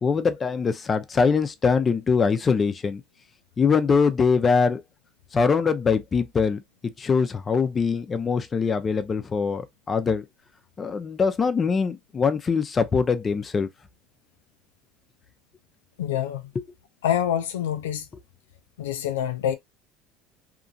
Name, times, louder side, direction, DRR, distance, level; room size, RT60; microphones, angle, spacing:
voice 1, 0.0-3.0 3.6-4.8 5.3-10.2 10.8-13.7, left 5 dB, 35° left, 0.6 m, -23 dB
voice 2, 16.0-16.5 17.0-18.1 18.8-19.6, left 10 dB, 90° left, 0.3 m, -26 dB
2.9 x 2.5 x 2.6 m
hypercardioid pair, 75°, 0 cm